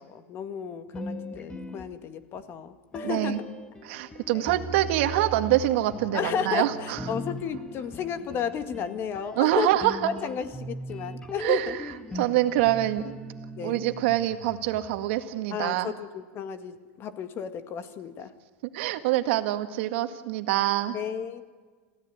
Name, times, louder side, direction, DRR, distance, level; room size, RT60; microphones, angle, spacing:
voice 1, 0.0-3.4 4.3-4.5 6.1-9.7 10.2-11.8 13.6-13.8 15.5-18.3 20.9-21.5, left 7 dB, 35° left, 10 dB, 2.0 m, -33 dB
sound 1, 0.9-2.4 2.9-15.1, equal, 10° left, 1.9 m, -39 dB
voice 2, 3.0-3.4 3.8-7.0 9.4-10.1 11.4-11.8 12.1-13.1 13.6-15.9 18.7-21.0, right 14 dB, 70° right, 8 dB, 2.0 m, -25 dB
27.5 x 16.5 x 9.6 m, 1.5 s
supercardioid pair, 135°, 7 cm